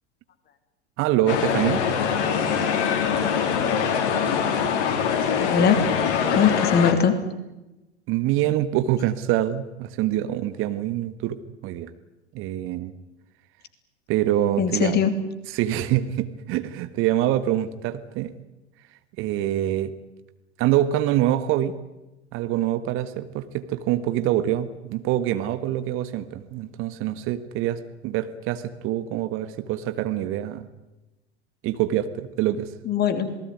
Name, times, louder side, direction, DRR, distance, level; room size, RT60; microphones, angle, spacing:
voice 1, 1.0-1.8 6.3-6.5 8.1-11.9 12.3-12.9 14.1-14.9 15.5-18.3 19.2-19.9 20.6-21.7 22.3-30.7 31.6-32.7, right 12 dB, 35° right, 11 dB, 1.6 m, -25 dB
sound 1, 1.3-6.9, left 7 dB, 50° left, 3.6 m, -23 dB
voice 2, 5.3-5.8 6.3-7.2 14.6-15.1 32.9-33.4, left 7 dB, 30° left, 10 dB, 2.9 m, -21 dB
27.0 x 19.5 x 9.5 m, 1.0 s
figure-of-eight pair, 85°, 34 cm